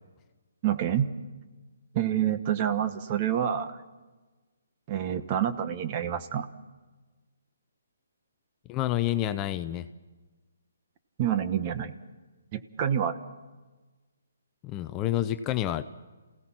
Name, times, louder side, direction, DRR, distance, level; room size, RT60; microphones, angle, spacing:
voice 1, 0.6-1.1 1.9-3.8 4.9-6.5 11.2-11.9 12.5-13.2, right 9 dB, 30° right, 10 dB, 1.2 m, -27 dB
voice 2, 8.7-9.9 14.6-15.8, left 13 dB, 20° left, 10 dB, 0.6 m, -28 dB
27.5 x 17.0 x 6.0 m, 1.2 s
hypercardioid pair, 160°, 0 cm